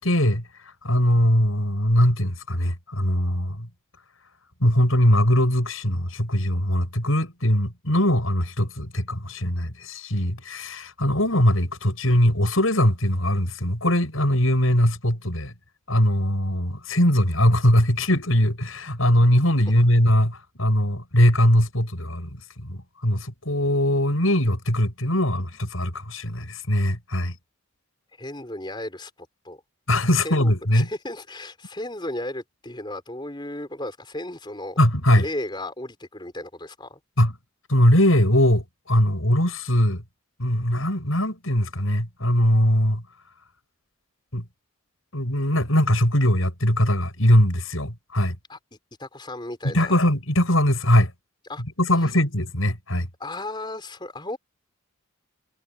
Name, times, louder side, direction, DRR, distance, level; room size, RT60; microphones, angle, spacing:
voice 1, 0.0-3.7 4.6-15.5 15.9-27.3 29.9-30.9 34.8-35.2 37.2-37.3 37.7-40.0 40.4-43.0 44.3-44.4 45.1-48.4 49.6-51.1 51.8-53.1, equal, 75° left, 7.9 m, -21 dB
voice 2, 28.2-29.6 30.2-34.8 35.2-37.0 48.5-48.6 49.0-50.0 51.4-51.6 53.2-54.4, left 1 dB, 20° left, 4.8 m, -35 dB
head